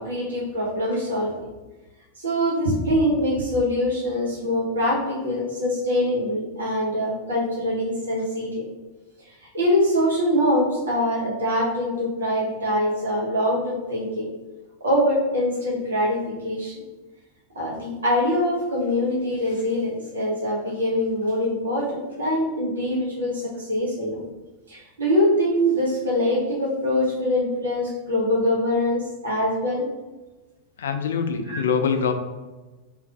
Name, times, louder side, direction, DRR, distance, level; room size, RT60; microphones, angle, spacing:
voice 1, 0.0-1.4 2.2-8.7 9.5-14.3 14.8-16.8 17.5-24.2 24.7-29.9 31.5-31.6, left 1 dB, 70° right, -4 dB, 0.9 m, -24 dB
voice 2, 30.8-32.1, left 6 dB, 65° left, 7 dB, 0.3 m, -24 dB
3.4 x 3.0 x 2.3 m, 1.2 s
figure-of-eight pair, 90°, 0 cm